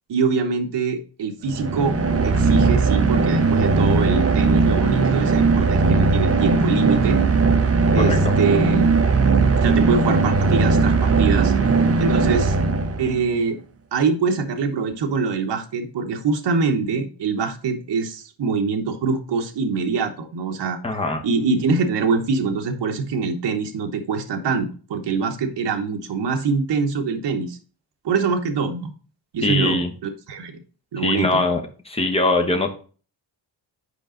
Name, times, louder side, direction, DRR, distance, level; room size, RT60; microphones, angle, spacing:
voice 1, 0.1-1.9 2.2-7.2 7.9-8.9 9.6-11.5 12.0-12.5 13.0-13.6 13.9-20.8 21.2-27.6 28.0-28.9 29.3-29.8 30.3-30.6 30.9-31.4, right 5 dB, 65° right, 4 dB, 1.1 m, -24 dB
sound 1, 1.5-13.3, right 3 dB, 30° right, 0.8 m, -18 dB
voice 2, 20.8-21.2 29.4-29.9 31.0-31.6 31.9-32.7, left 2 dB, 15° left, 3 dB, 1.1 m, -21 dB
8.3 x 5.0 x 3.8 m, 0.38 s
wide cardioid pair, 155°, 45 cm